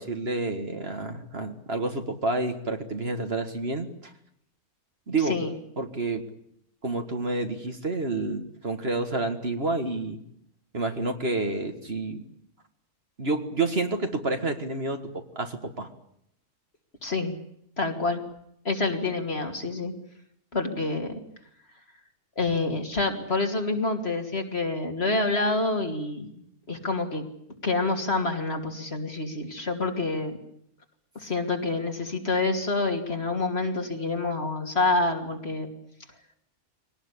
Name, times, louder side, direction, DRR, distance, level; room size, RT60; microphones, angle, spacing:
voice 1, 0.0-4.1 5.1-5.4 5.8-6.3 6.8-10.2 10.7-12.2 13.2-15.9, right 2 dB, 45° right, 6 dB, 2.1 m, -29 dB
voice 2, 17.0-17.3 17.8-18.2 18.6-19.9 20.5-21.2 22.4-26.3 26.7-27.2 27.6-30.4 31.1-35.7, left 3 dB, 45° left, 4 dB, 3.0 m, -27 dB
23.5 x 18.5 x 10.0 m, 0.74 s
omnidirectional pair, 1.5 m